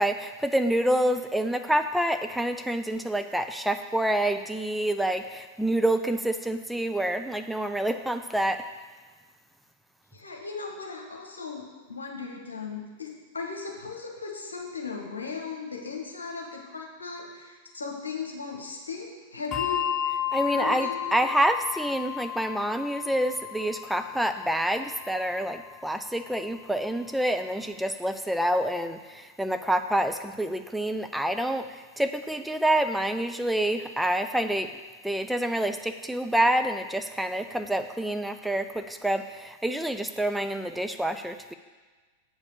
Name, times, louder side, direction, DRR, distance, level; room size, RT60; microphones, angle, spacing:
voice 1, 0.0-8.6 20.3-34.7 35.0-41.5, right 1 dB, ahead, 7 dB, 0.4 m, -27 dB
voice 2, 10.1-19.9 20.4-21.1, left 4 dB, 75° left, 1 dB, 1.3 m, -37 dB
Bell, 19.5-26.4, left 10 dB, 25° left, 0.8 m, -34 dB
7.8 x 4.8 x 6.7 m, 1.4 s
figure-of-eight pair, 90°, 0 cm